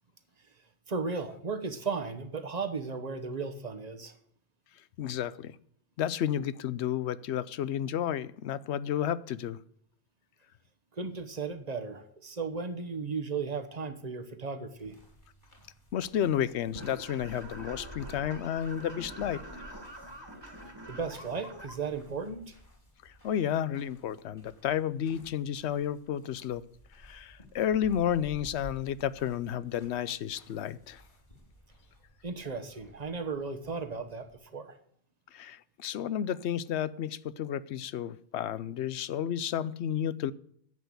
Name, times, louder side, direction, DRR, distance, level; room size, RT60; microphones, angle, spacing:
voice 1, 0.9-4.2 10.9-15.0 20.9-22.5 32.2-34.8, right 4 dB, 40° right, 1.3 m, -35 dB
voice 2, 5.0-5.6 6.0-9.6 15.9-19.7 23.0-26.6 27.0-31.0 35.3-40.3, left 9 dB, 80° left, 0.9 m, -32 dB
sound 1, 14.8-34.4, left 1 dB, 45° left, 3.5 m, -54 dB
sound 2, 16.8-21.7, right 1 dB, 25° right, 2.0 m, -46 dB
11.0 x 8.1 x 7.9 m
omnidirectional pair, 1.1 m